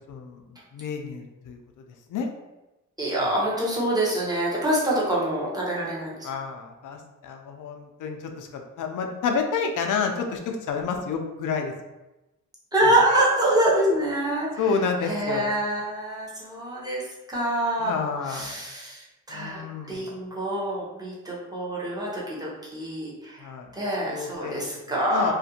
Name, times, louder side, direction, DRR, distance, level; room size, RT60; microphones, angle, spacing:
voice 1, 0.1-0.4 0.7-1.6 2.1-2.3 3.2-3.3 6.2-11.7 14.6-15.5 17.8-18.5 19.3-20.1 23.4-23.7 24.1-25.3, left 5 dB, 70° left, 4 dB, 0.4 m, -29 dB
voice 2, 3.0-6.3 12.7-17.0 17.3-19.6 19.9-25.3, right 1 dB, 10° right, -6 dB, 0.7 m, -26 dB
2.5 x 2.2 x 2.7 m, 1.0 s
wide cardioid pair, 125°, 33 cm